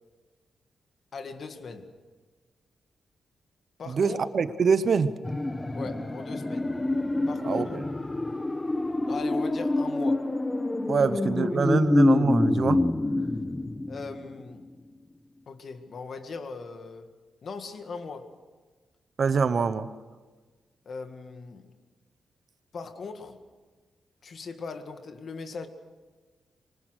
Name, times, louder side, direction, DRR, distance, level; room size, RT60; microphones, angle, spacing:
voice 1, 1.1-1.9 3.8-4.3 5.7-6.8 7.3-7.8 9.1-10.3 11.4-11.6 13.9-14.7 15.5-17.1 17.4-18.3 20.9-21.7 22.7-23.4 24.2-25.7, left 4 dB, 50° left, 7 dB, 1.9 m, -39 dB
voice 2, 3.9-5.1 7.4-7.8 10.9-12.8 19.2-19.9, right 5 dB, 45° right, 13 dB, 0.9 m, -25 dB
sound 1, 5.2-14.4 14.7-14.8, left 2 dB, 15° left, 1.0 m, -26 dB
26.0 x 24.0 x 6.4 m, 1.3 s
wide cardioid pair, 145°, 0 cm